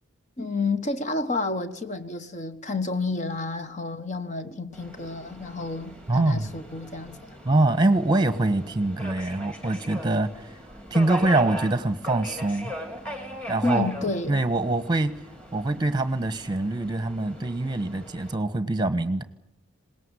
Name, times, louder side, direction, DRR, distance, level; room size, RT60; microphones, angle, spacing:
voice 1, 0.4-7.4 13.6-14.4, left 3 dB, 35° left, 1.2 m, -30 dB
Subway metro underground, 4.7-18.3, equal, 5° left, 2.9 m, -39 dB
voice 2, 6.1-6.5 7.4-10.5 10.9-12.7 13.5-13.9 14.3-15.1 15.5-19.2, right 2 dB, 20° right, 1.2 m, -24 dB
21.0 x 18.5 x 9.8 m
head